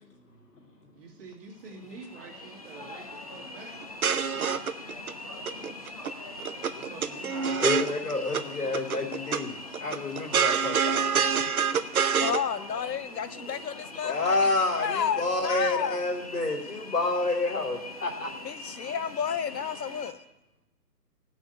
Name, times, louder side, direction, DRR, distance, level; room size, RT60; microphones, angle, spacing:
voice 1, 0.9-3.8 6.7-7.6, right 4 dB, 35° right, -1 dB, 2.6 m, -47 dB
sound 1, 1.5-20.1, left 2 dB, 25° left, 0.6 m, -42 dB
sound 2, 3.8-5.1 5.5-6.1 6.4-8.4 8.7-9.4 9.7-12.4, right 7 dB, 60° right, 0.8 m, -26 dB
voice 2, 7.6-11.2 14.0-18.3, left 3 dB, 70° left, 0 dB, 3.0 m, -29 dB
voice 3, 12.2-14.4 14.8-16.0 18.4-20.2, left 7 dB, 85° left, 13 dB, 0.7 m, -31 dB
15.5 x 6.4 x 8.0 m, 0.95 s
figure-of-eight pair, 150°, 49 cm